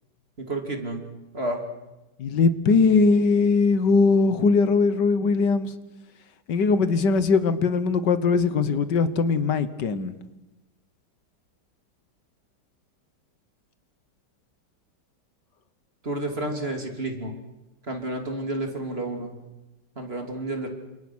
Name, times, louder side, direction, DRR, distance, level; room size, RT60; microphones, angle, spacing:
voice 1, 0.4-1.0 1.3-1.6 16.0-17.3 17.9-19.3 20.0-20.7, right 2 dB, 35° right, 3 dB, 3.3 m, -30 dB
voice 2, 2.2-5.7 6.5-10.1, left 4 dB, 80° left, 13 dB, 1.9 m, -20 dB
29.0 x 27.0 x 6.3 m, 1.0 s
omnidirectional pair, 1.9 m